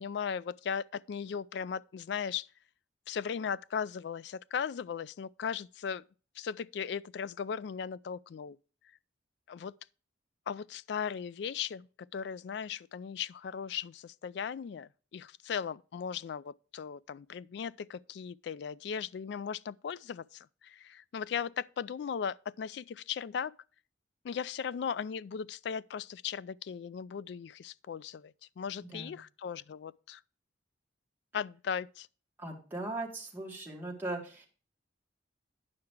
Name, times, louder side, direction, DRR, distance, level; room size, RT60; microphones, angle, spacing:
voice 1, 0.0-2.5 3.1-6.0 6.4-8.6 9.5-9.7 10.5-23.5 24.2-30.2 31.3-32.1, left 7 dB, 65° left, 0.3 m, -37 dB
voice 2, 32.4-34.5, right 2 dB, 10° right, 2.1 m, -39 dB
9.7 x 5.8 x 4.7 m
head